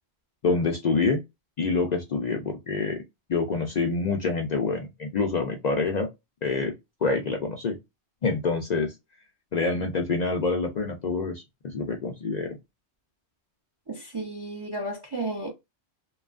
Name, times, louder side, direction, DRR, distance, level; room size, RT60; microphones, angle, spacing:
voice 1, 0.4-1.2 1.6-3.0 3.3-6.1 6.4-6.8 7.0-7.8 8.2-8.9 9.5-12.6, left 4 dB, 50° left, 0.5 m, -26 dB
voice 2, 13.9-15.5, right 2 dB, 35° right, 0.4 m, -33 dB
2.8 x 2.3 x 2.4 m
omnidirectional pair, 1.1 m